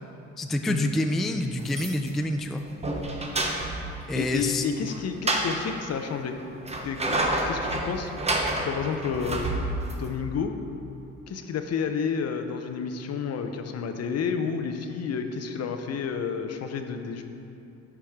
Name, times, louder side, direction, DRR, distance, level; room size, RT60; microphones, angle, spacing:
voice 1, 0.4-2.6 4.1-4.6, left 1 dB, ahead, 5 dB, 0.3 m, -27 dB
sound 1, 1.6-2.2 2.6-3.9 4.8-5.6 6.4-10.1, right 1 dB, 20° right, 1.0 m, -28 dB
voice 2, 4.1-6.4 6.8-8.1 8.6-9.4 10.0-10.6 11.3-17.2, left 6 dB, 55° left, 6 dB, 0.7 m, -30 dB
11.5 x 4.9 x 3.6 m, 2.9 s
cardioid pair, 90°, 30 cm